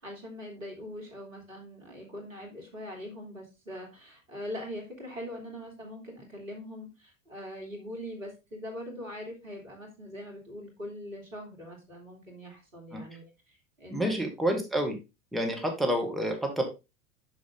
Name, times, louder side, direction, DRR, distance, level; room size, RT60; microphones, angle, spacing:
voice 1, 0.0-14.1, left 1 dB, 85° right, 0 dB, 2.7 m, -42 dB
voice 2, 13.9-15.0 15.3-16.6, equal, ahead, 2 dB, 1.7 m, -28 dB
6.5 x 6.2 x 3.6 m, 0.26 s
figure-of-eight pair, 80°, 39 cm